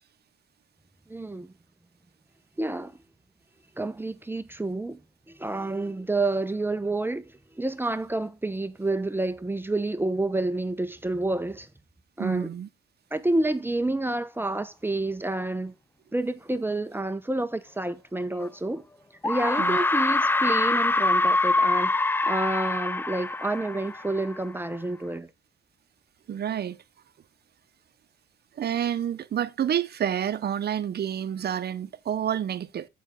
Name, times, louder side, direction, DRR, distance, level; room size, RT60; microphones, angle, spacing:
voice 1, 1.1-1.5 2.6-3.0 3.8-5.0 5.3-7.3 7.6-11.7 12.2-12.5 13.1-15.7 16.1-18.8 19.2-25.3, right 2 dB, 10° right, 0.9 m, -29 dB
voice 2, 12.2-12.7 19.6-19.8 26.3-26.8 28.6-32.9, right 9 dB, 55° right, 0.9 m, -29 dB
sound 1, 18.4-18.5 19.2-24.4, left 2 dB, 10° left, 0.4 m, -24 dB
8.2 x 7.3 x 3.7 m
cardioid pair, 85°, 20 cm